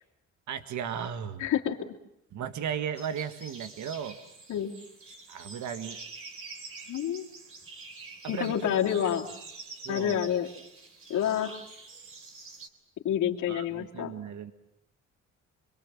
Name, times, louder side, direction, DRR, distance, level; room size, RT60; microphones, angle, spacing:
voice 1, 0.5-1.5 2.3-4.2 5.3-6.0 8.2-9.0 9.8-10.2 13.5-14.5, right 8 dB, 70° right, 9 dB, 1.7 m, -36 dB
voice 2, 1.4-1.8 4.5-4.7 6.9-7.3 8.3-9.3 9.9-10.5 11.1-11.6 13.0-14.1, left 10 dB, 75° left, 0 dB, 2.8 m, -28 dB
sound 1, 3.0-12.7, right 3 dB, 45° right, 3.6 m, -46 dB
27.0 x 22.5 x 7.5 m, 0.83 s
cardioid pair, 90°, 30 cm